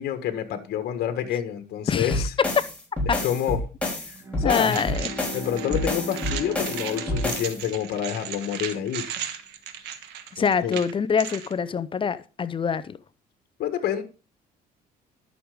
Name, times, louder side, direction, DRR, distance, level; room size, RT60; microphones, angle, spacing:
voice 1, 0.0-2.3 3.0-3.6 4.1-4.8 5.3-9.1 10.4-10.8 13.6-14.0, left 10 dB, 65° left, 1.6 m, -28 dB
voice 2, 1.9-2.2 3.1-3.2 4.4-5.1 10.4-13.0, left 6 dB, 30° left, 0.7 m, -25 dB
sound 1, 2.1-7.6, left 1 dB, 5° left, 3.7 m, -29 dB
Bowed string instrument, 4.1-9.0, equal, 20° right, 1.6 m, -38 dB
sound 2, 4.6-11.5, right 9 dB, 85° right, 1.4 m, -36 dB
11.5 x 6.4 x 4.9 m
cardioid pair, 110°, 17 cm